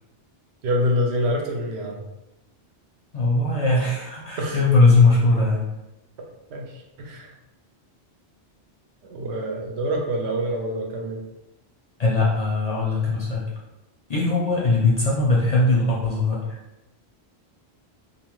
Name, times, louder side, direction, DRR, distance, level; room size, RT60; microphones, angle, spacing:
voice 1, 0.6-2.1 4.4-4.6 6.5-7.3 9.0-11.2, equal, 90° right, 1 dB, 0.9 m, -26 dB
voice 2, 3.1-5.6 12.0-13.4 14.1-16.4, left 3 dB, 50° left, -5 dB, 0.5 m, -20 dB
2.6 x 2.3 x 3.0 m, 0.95 s
omnidirectional pair, 1.1 m